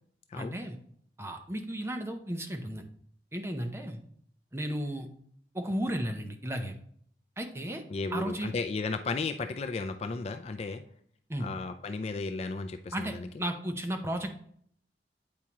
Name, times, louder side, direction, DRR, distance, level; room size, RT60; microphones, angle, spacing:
voice 1, 0.3-0.8 1.2-2.8 3.3-4.0 4.5-5.1 5.5-6.7 7.4-7.8 8.1-8.5 11.3-11.5 12.9-14.4, right 1 dB, 15° right, 4 dB, 0.6 m, -34 dB
voice 2, 7.9-10.8 11.4-13.3, left 3 dB, 35° left, 7 dB, 0.3 m, -34 dB
8.5 x 4.7 x 2.9 m, 0.64 s
head